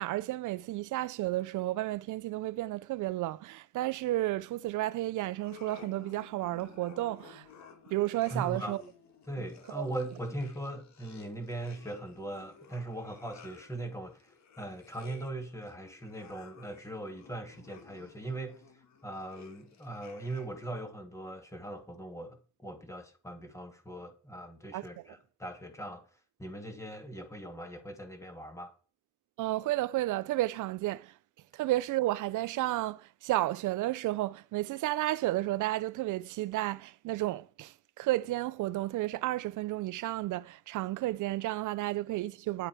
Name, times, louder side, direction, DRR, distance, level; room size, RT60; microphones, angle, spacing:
voice 1, 0.0-7.5 7.9-8.8 9.7-9.9 24.7-24.9 29.4-31.1 31.5-42.7, right 16 dB, 80° right, 0.6 m, -32 dB
sound 1, 5.3-20.7, left 6 dB, 65° left, 2.2 m, -55 dB
voice 2, 8.3-8.8 9.3-28.7, right 1 dB, 10° left, 2.7 m, -40 dB
10.5 x 8.1 x 4.9 m
cardioid pair, 90°, 30 cm